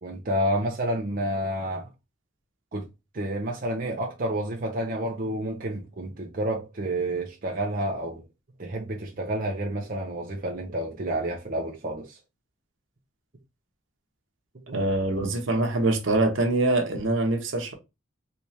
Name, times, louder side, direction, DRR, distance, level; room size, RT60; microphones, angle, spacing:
voice 1, 0.0-1.9 2.7-2.8 3.1-8.2 8.6-12.2 14.7-14.8, right 1 dB, 40° right, 0.6 m, -29 dB
voice 2, 14.7-17.7, right 2 dB, 65° right, 0.9 m, -24 dB
3.3 x 3.2 x 2.7 m
head